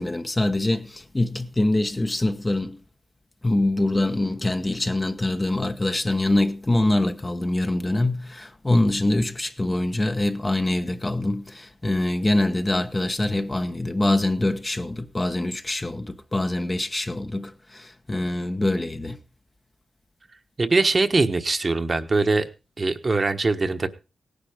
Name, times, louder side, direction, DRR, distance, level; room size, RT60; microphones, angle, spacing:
voice 1, 0.0-2.8 3.4-19.2, left 1 dB, 20° left, 1.1 m, -24 dB
voice 2, 20.6-22.5 22.8-23.9, right 3 dB, 30° right, 1.3 m, -22 dB
17.5 x 10.5 x 5.1 m
cardioid pair, 100°, 0 cm